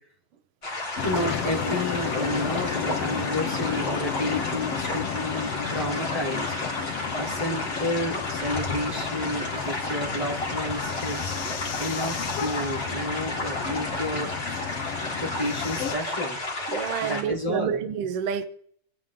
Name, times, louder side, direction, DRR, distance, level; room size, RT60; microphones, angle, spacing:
sound 1, 0.6-17.2, left 1 dB, 20° left, 3.0 m, -32 dB
sound 2, 1.0-16.0, left 8 dB, 70° left, 1.6 m, -33 dB
voice 1, 1.0-6.5 7.1-11.3 11.8-14.6 15.2-16.4 17.0-17.8, left 1 dB, 10° right, 3.3 m, -31 dB
voice 2, 16.7-18.4, right 8 dB, 60° right, 1.6 m, -28 dB
28.0 x 11.0 x 3.7 m
omnidirectional pair, 3.7 m